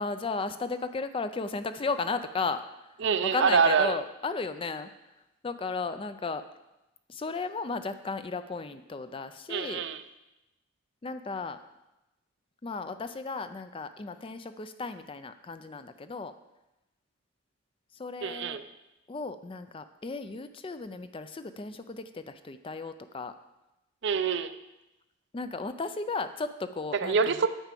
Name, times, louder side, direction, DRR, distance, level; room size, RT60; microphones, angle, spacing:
voice 1, 0.0-2.6 3.3-4.9 5.4-6.4 7.1-9.8 11.0-11.6 12.6-16.3 18.0-18.6 19.1-23.3 25.3-27.5, left 4 dB, 25° left, 11 dB, 0.4 m, -35 dB
voice 2, 3.0-4.0 9.5-10.0 18.2-18.6 24.0-24.5 26.9-27.5, right 5 dB, 55° right, 11 dB, 0.5 m, -25 dB
9.0 x 5.0 x 7.4 m, 0.96 s
head